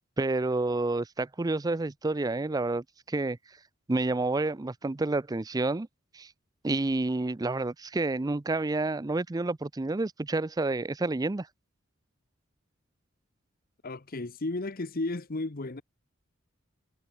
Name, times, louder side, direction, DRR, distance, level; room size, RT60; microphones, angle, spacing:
voice 1, 0.2-3.4 3.9-5.9 6.1-6.3 6.6-11.5, right 2 dB, 20° right, 0.5 m, -29 dB
voice 2, 13.8-15.8, left 2 dB, 45° left, 1.1 m, -33 dB
head